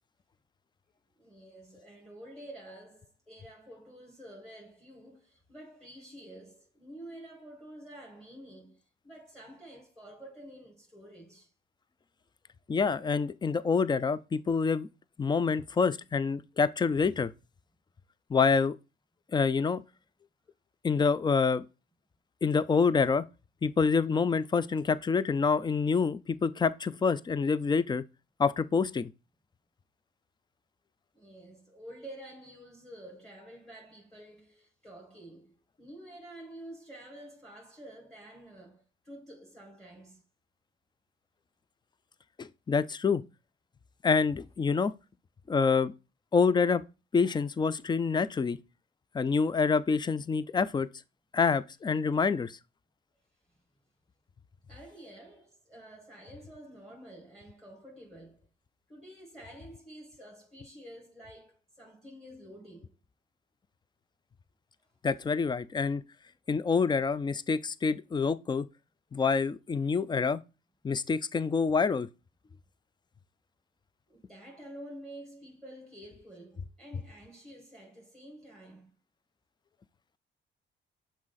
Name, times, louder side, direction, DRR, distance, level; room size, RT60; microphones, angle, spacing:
voice 1, 1.2-11.5 31.1-40.2 54.7-58.5 58.9-62.9 74.1-78.9, right 1 dB, 5° left, 1.7 m, -49 dB
voice 2, 12.7-14.9 15.2-17.3 18.3-18.8 19.3-19.8 20.8-21.6 22.4-23.2 23.6-28.0 28.4-29.1 42.4-43.2 44.0-44.9 45.5-45.9 46.3-46.8 47.1-48.6 49.1-50.9 51.3-52.5 65.0-66.0 66.5-68.7 69.1-70.4 70.8-72.1, left 5 dB, 20° left, 0.4 m, -27 dB
6.2 x 4.1 x 3.9 m
cardioid pair, 90°, 20 cm